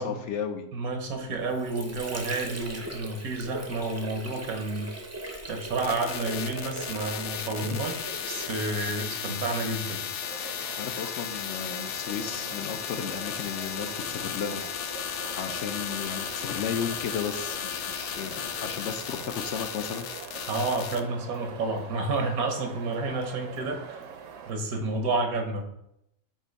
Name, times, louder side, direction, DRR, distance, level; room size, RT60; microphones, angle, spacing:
voice 1, 0.0-0.7 7.7-7.8 10.8-14.6 15.4-20.1, left 7 dB, 65° left, 7 dB, 0.8 m, -34 dB
voice 2, 0.7-4.9 5.5-10.0 20.5-24.0 24.5-25.6, right 3 dB, 85° right, 4 dB, 1.5 m, -30 dB
Water / Sink (filling or washing), 1.2-8.9, right 1 dB, 20° right, 0.4 m, -39 dB
sound 1, 5.8-21.0, left 9 dB, 90° left, 1.1 m, -35 dB
sound 2, 10.2-24.5, right 6 dB, 70° right, 1.0 m, -44 dB
7.4 x 2.7 x 5.2 m, 0.79 s
omnidirectional pair, 1.5 m